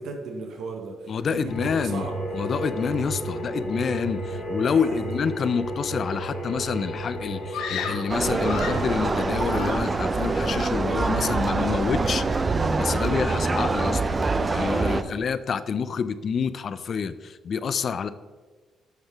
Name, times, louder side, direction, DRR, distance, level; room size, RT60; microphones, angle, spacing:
voice 1, 0.0-2.1 4.3-5.0 13.1-13.3 14.7-15.3, right 3 dB, 75° right, 2 dB, 0.8 m, -38 dB
voice 2, 1.1-2.1 2.3-12.2 12.8-14.0 14.5-18.1, left 6 dB, 50° left, 14 dB, 0.3 m, -27 dB
sound 1, 1.5-9.6, right 1 dB, 70° left, 1.5 m, -32 dB
Screaming, 7.5-8.9 9.5-10.1 10.4-10.8, left 6 dB, 85° left, 0.7 m, -34 dB
sound 2, 8.1-15.0, right 3 dB, 30° right, 0.4 m, -25 dB
9.3 x 3.5 x 3.5 m, 1.4 s
cardioid pair, 90°, 0 cm